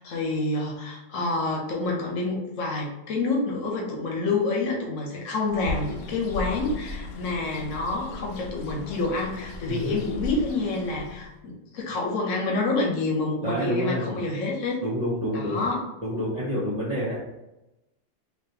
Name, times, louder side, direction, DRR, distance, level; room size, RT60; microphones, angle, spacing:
voice 1, 0.0-14.8 15.3-15.8, left 3 dB, 60° left, -1 dB, 1.2 m, -28 dB
Bird, 5.5-11.4, left 3 dB, 80° left, 1.1 m, -37 dB
voice 2, 13.4-14.2 14.8-15.6 16.0-17.2, equal, 30° right, -8 dB, 0.9 m, -28 dB
3.9 x 3.2 x 2.8 m, 0.95 s
omnidirectional pair, 1.5 m